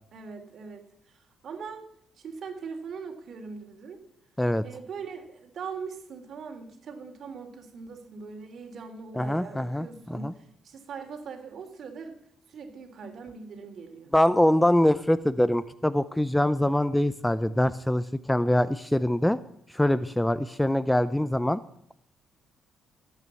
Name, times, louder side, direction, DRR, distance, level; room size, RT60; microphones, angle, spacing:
voice 1, 0.1-1.9 2.2-4.0 4.6-12.2 12.5-14.1, right 5 dB, 60° right, 5 dB, 3.5 m, -41 dB
voice 2, 9.1-10.3 14.1-19.4 19.7-21.6, left 1 dB, 5° left, 16 dB, 0.6 m, -24 dB
15.5 x 9.2 x 7.7 m, 0.69 s
cardioid pair, 90°, 0 cm